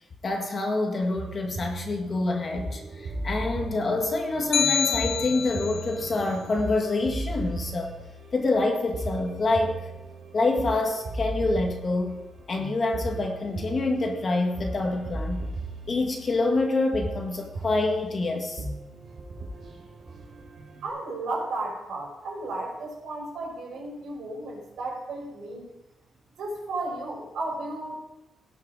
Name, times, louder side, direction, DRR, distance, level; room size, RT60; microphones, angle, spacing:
voice 1, 0.2-7.9 8.3-9.9 10.3-12.2 12.5-15.5 15.9-18.6, left 2 dB, 35° left, 3 dB, 1.7 m, -26 dB
sound 1, 1.2-20.9, right 2 dB, 50° right, 3.1 m, -37 dB
sound 2, 4.5-5.9, left 7 dB, 60° left, 0.7 m, -26 dB
voice 2, 20.8-25.7 26.4-27.9, right 2 dB, 80° right, -2 dB, 5.4 m, -34 dB
17.5 x 6.4 x 4.9 m, 0.96 s
wide cardioid pair, 150°, 0 cm